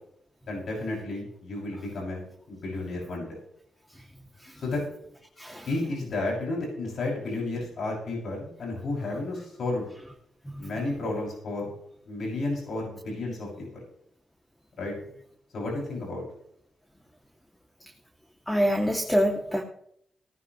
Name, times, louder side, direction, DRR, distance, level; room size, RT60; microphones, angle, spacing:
voice 1, 0.4-3.4 4.6-4.8 5.7-9.9 10.6-11.6 12.1-13.8 14.8-14.9 15.5-16.2, left 2 dB, 65° left, -2 dB, 6.9 m, -32 dB
voice 2, 18.5-19.6, equal, 10° left, 1 dB, 2.6 m, -25 dB
19.5 x 11.5 x 3.2 m, 0.70 s
cardioid pair, 65°, 0 cm